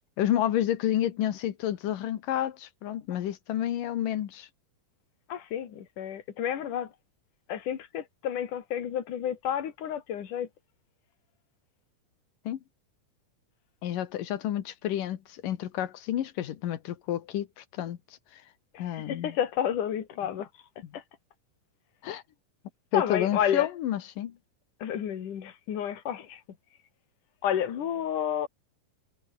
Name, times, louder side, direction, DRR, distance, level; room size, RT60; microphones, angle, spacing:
voice 1, 0.2-4.5 12.4-12.6 13.8-18.0 18.3-18.4 18.8-19.4 22.0-22.2 22.9-24.4, left 11 dB, 90° left, 3.2 m, -30 dB
voice 2, 5.3-6.9 7.5-10.5 18.7-20.5 20.9-21.0 22.9-23.7 24.8-26.4 27.4-28.5, left 9 dB, 75° left, 3.9 m, -30 dB
omnidirectional pair, 3.7 m